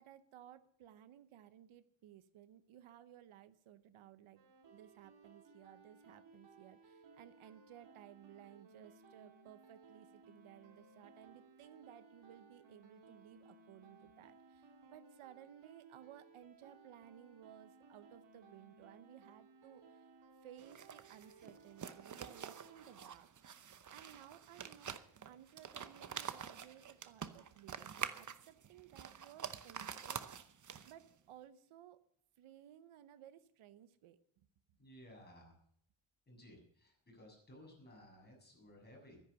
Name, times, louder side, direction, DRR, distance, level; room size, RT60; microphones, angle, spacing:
voice 1, 0.0-20.1 20.4-23.3 23.9-30.5 30.8-32.0 32.4-34.2, right 11 dB, 90° right, 13 dB, 1.0 m, -58 dB
sound 1, 4.4-23.0, right 4 dB, 60° right, 2.9 m, -62 dB
sound 2, 20.6-31.1, right 8 dB, 40° right, 0.9 m, -47 dB
voice 2, 34.8-35.6 36.3-39.2, equal, 20° left, -1 dB, 6.9 m, -58 dB
13.0 x 10.5 x 6.9 m, 0.67 s
wide cardioid pair, 135°, 48 cm